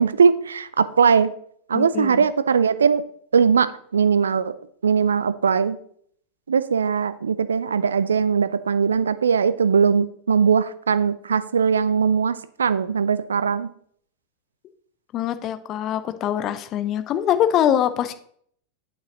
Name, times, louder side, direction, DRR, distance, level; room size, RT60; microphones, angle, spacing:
voice 1, 0.0-1.3 1.7-3.0 3.3-4.5 4.8-5.8 6.5-13.7, right 6 dB, 70° right, 14 dB, 0.4 m, -20 dB
voice 2, 1.7-2.3 15.1-18.1, left 10 dB, 35° left, 11 dB, 0.6 m, -23 dB
8.8 x 5.4 x 3.9 m, 0.63 s
figure-of-eight pair, 90°, 0 cm